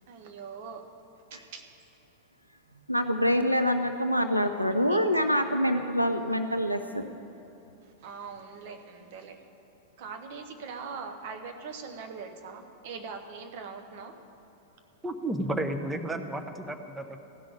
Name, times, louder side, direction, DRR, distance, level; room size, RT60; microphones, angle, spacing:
voice 1, 0.1-0.9 1.3-1.6 4.4-5.0 5.7-5.8 8.0-9.4 10.0-14.1, right 5 dB, 50° right, 6 dB, 1.2 m, -42 dB
voice 2, 2.9-7.1, equal, 90° right, 7 dB, 0.5 m, -26 dB
voice 3, 15.0-17.2, right 1 dB, 10° right, 6 dB, 0.9 m, -32 dB
15.5 x 6.2 x 9.7 m, 2.8 s
figure-of-eight pair, 90°, 0 cm